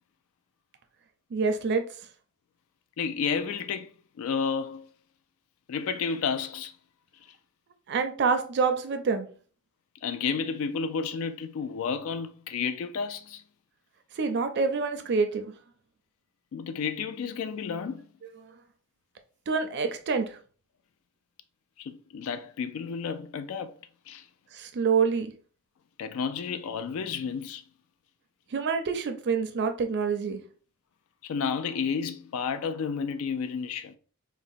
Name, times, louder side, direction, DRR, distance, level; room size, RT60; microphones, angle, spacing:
voice 1, 1.3-1.8 7.9-9.3 14.2-15.5 18.4-18.5 19.5-20.4 24.5-25.3 28.5-30.4, right 5 dB, 50° right, 0.4 m, -26 dB
voice 2, 3.0-3.9 4.2-4.9 5.7-6.7 10.0-13.4 16.5-18.0 21.8-23.7 24.1-24.2 26.0-27.6 31.2-33.9, left 6 dB, 65° left, 0.3 m, -31 dB
3.9 x 2.1 x 2.5 m
head